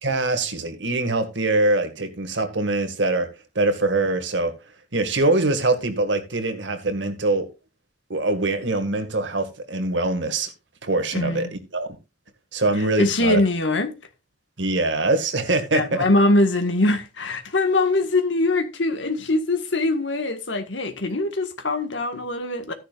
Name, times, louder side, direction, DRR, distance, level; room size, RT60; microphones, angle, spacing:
voice 1, 0.0-3.3 3.6-4.5 4.9-7.5 8.1-10.5 10.8-11.5 11.7-11.9 12.5-13.4 14.6-16.0, right 2 dB, 75° right, 2.0 m, -23 dB
voice 2, 11.1-11.5 13.0-13.9 15.7-22.7, left 2 dB, 75° left, 1.8 m, -22 dB
14.0 x 10.0 x 2.5 m
head